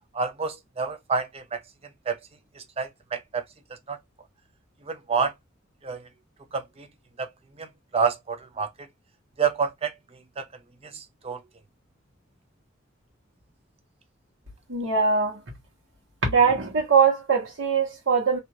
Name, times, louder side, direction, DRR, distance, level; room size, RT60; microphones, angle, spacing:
voice 1, 0.1-1.6 2.1-2.2 2.6-3.4 3.9-4.0 4.9-5.3 5.8-6.0 6.5-6.9 7.2-7.3 7.6-7.7 7.9-8.7 9.4-9.9 10.4-10.5 10.9-11.4, right 5 dB, 30° right, 0.6 m, -28 dB
voice 2, 14.7-15.4 16.2-18.4, right 5 dB, 75° right, 1.2 m, -21 dB
2.8 x 2.4 x 2.9 m
head